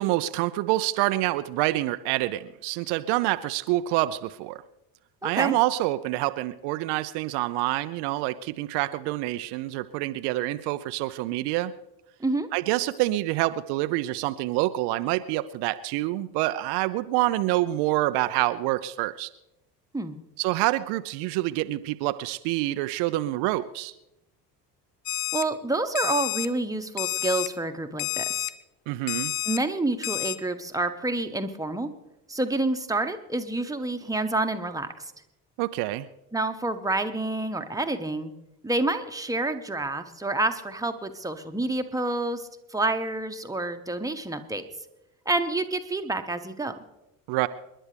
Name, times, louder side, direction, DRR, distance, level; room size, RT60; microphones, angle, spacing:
voice 1, 0.0-4.6 5.2-11.7 12.5-19.3 20.4-23.9 28.9-29.4 35.6-36.1 47.3-47.5, right 17 dB, 55° right, 12 dB, 0.7 m, -27 dB
voice 2, 5.2-5.6 12.2-12.5 19.9-20.2 25.3-28.5 29.4-31.9 32.3-35.1 36.3-38.3 38.6-44.6 45.2-46.8, right 2 dB, 5° right, 7 dB, 1.3 m, -28 dB
Alarm, 25.1-25.4 26.0-26.5 27.0-27.5 28.0-28.5 29.1-29.6 30.0-30.4, left 15 dB, 65° left, 0.8 m, -29 dB
28.5 x 11.0 x 3.4 m, 0.94 s
figure-of-eight pair, 55°, 48 cm